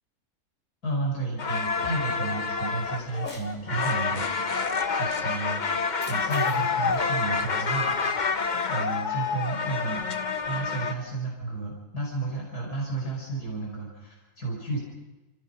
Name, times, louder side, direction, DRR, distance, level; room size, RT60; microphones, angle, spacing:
voice 1, 0.8-14.8, right 3 dB, 85° left, -2 dB, 6.0 m, -33 dB
sound 1, 1.4-10.9, left 5 dB, 35° left, 0.8 m, -28 dB
Cat, 3.1-3.6 5.7-8.1, left 2 dB, 60° left, 4.0 m, -44 dB
30.0 x 15.5 x 5.6 m, 1.1 s
omnidirectional pair, 1.6 m